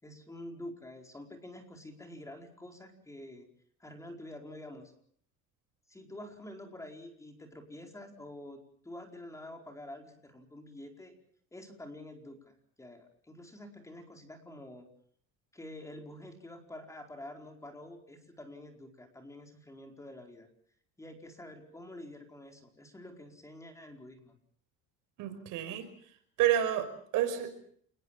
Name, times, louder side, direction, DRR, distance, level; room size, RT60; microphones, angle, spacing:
voice 1, 0.0-3.5 3.8-4.9 5.9-11.1 11.5-14.9 15.5-20.5 21.0-24.4, left 1 dB, 10° left, 4 dB, 4.7 m, -48 dB
voice 2, 25.2-25.9 26.4-27.6, right 11 dB, 70° right, 9 dB, 5.6 m, -30 dB
29.0 x 21.0 x 7.5 m, 0.62 s
cardioid pair, 145°, 33 cm